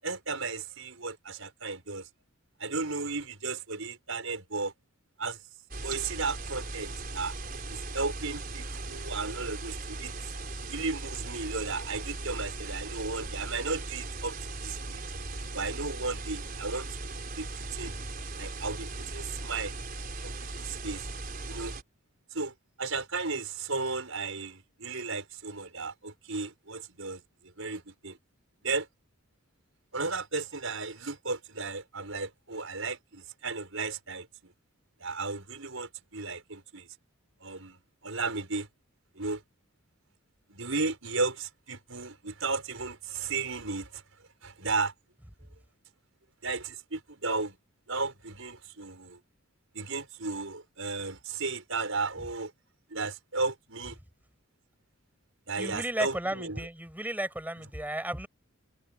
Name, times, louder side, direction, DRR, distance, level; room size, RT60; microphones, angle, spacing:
voice 1, 0.0-2.1 2.6-4.7 5.2-5.4 5.8-7.3 7.7-10.1 10.7-15.0 15.5-16.9 17.4-17.9 18.4-19.7 20.2-21.1 21.5-21.7 22.3-27.2 27.6-28.2 28.6-28.9 29.9-34.3 35.0-36.9 37.4-37.8 38.0-38.7 39.2-39.4 40.5-44.0 44.4-44.9 46.4-47.6 47.9-49.2 49.7-52.5 52.9-54.0 55.5-56.7 57.6-57.7, right 3 dB, 70° right, 6.2 m, -34 dB
sound 1, 5.7-21.8, right 2 dB, 45° right, 4.7 m, -38 dB
voice 2, 55.6-58.3, right 1 dB, 10° right, 7.9 m, -33 dB
head